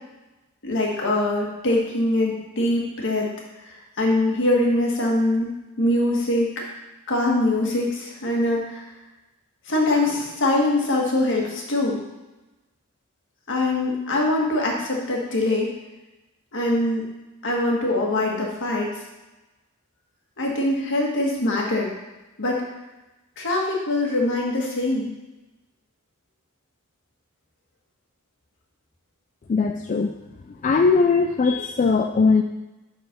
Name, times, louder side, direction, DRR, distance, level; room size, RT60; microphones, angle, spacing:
voice 1, 0.6-3.3 3.6-6.6 7.1-8.9 9.7-12.0 13.5-15.7 16.5-17.0 17.4-18.9 20.4-21.9 22.4-22.6 23.4-25.1, left 1 dB, 60° left, -1 dB, 1.7 m, -23 dB
voice 2, 29.5-30.1 30.6-32.4, left 4 dB, 35° left, 4 dB, 0.3 m, -19 dB
6.2 x 5.6 x 5.1 m, 1.1 s
head